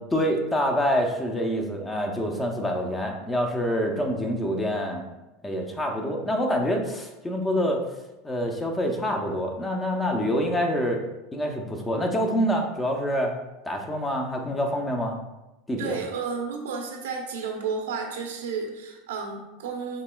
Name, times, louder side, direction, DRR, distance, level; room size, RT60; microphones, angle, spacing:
voice 1, 0.1-5.0 5.4-7.8 8.2-11.0 11.3-13.3 13.7-15.2 15.7-16.0, equal, 15° left, 2 dB, 0.6 m, -26 dB
voice 2, 15.8-20.0, right 5 dB, 85° right, 2 dB, 0.8 m, -32 dB
5.2 x 2.9 x 2.3 m, 1.0 s
supercardioid pair, 105°, 0 cm